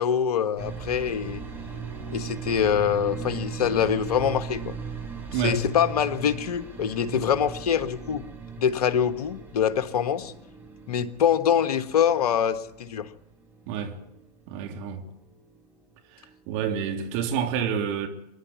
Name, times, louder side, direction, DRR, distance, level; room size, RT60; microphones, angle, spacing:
voice 1, 0.0-1.4 2.1-4.7 5.4-8.2 8.6-10.3 10.9-13.1, left 8 dB, 60° left, 1.5 m, -24 dB
sound 1, 0.6-16.4 16.6-17.4, right 6 dB, 10° right, 6.3 m, -39 dB
voice 2, 5.3-5.6 13.7-14.0 14.5-15.0 16.1-18.1, right 7 dB, 45° right, 3.0 m, -28 dB
24.5 x 11.5 x 9.8 m
figure-of-eight pair, 100°, 21 cm